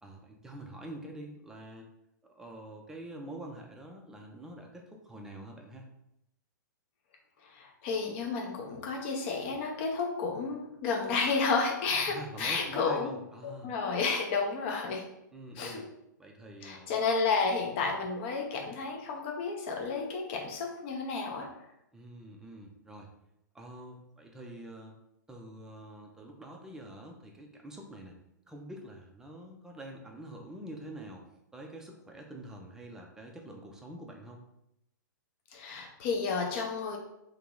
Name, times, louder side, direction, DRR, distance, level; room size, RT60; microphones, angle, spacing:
voice 1, 0.0-1.9 2.2-5.9 12.1-13.7 15.3-15.8 16.2-16.9 21.9-23.1 23.5-25.0 25.3-28.2 28.5-31.2 31.5-34.4, right 1 dB, 5° right, 1 dB, 0.5 m, -46 dB
voice 2, 7.4-13.1 13.4-15.0 15.6-15.8 16.6-21.5 35.5-37.0, left 4 dB, 35° left, 1 dB, 0.7 m, -31 dB
3.0 x 2.8 x 3.7 m, 0.82 s
figure-of-eight pair, 110°, 10 cm